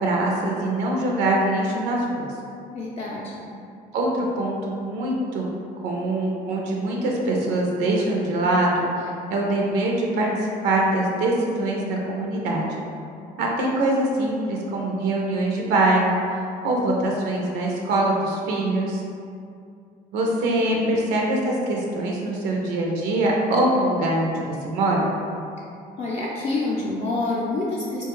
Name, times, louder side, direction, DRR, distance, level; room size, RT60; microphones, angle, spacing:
voice 1, 0.0-2.3 3.9-5.5 5.8-10.3 10.6-12.7 13.4-19.0 20.1-25.1, right 1 dB, 85° right, -2 dB, 0.5 m, -23 dB
voice 2, 2.7-3.4 20.4-21.0 26.0-28.0, left 2 dB, 40° left, -5 dB, 0.4 m, -28 dB
2.9 x 2.2 x 3.0 m, 2.4 s
cardioid pair, 110°, 17 cm